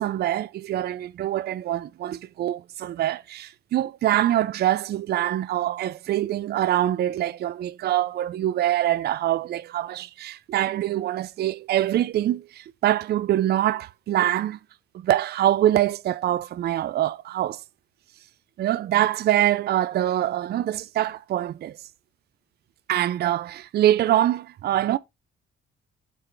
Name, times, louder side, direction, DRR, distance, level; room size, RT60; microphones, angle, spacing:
voice 1, 0.0-14.6 14.9-17.6 18.6-21.8 22.9-25.0, right 12 dB, 55° right, 0.4 m, -24 dB
7.5 x 3.4 x 4.5 m
cardioid pair, 90°, 20 cm